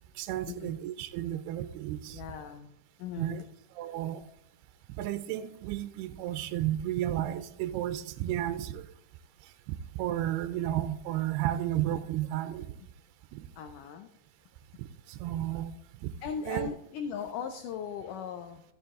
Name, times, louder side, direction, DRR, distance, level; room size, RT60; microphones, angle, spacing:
voice 1, 0.2-2.2 3.2-3.5 3.8-4.2 5.0-8.9 9.7-12.7 13.3-13.5 14.8-15.8 16.0-16.2 16.5-16.7, right 12 dB, 85° right, 10 dB, 2.6 m, -33 dB
voice 2, 2.1-2.7 3.0-3.5 13.6-14.1 16.2-18.6, left 7 dB, 85° left, 7 dB, 1.9 m, -38 dB
14.0 x 6.9 x 3.6 m, 0.79 s
omnidirectional pair, 4.6 m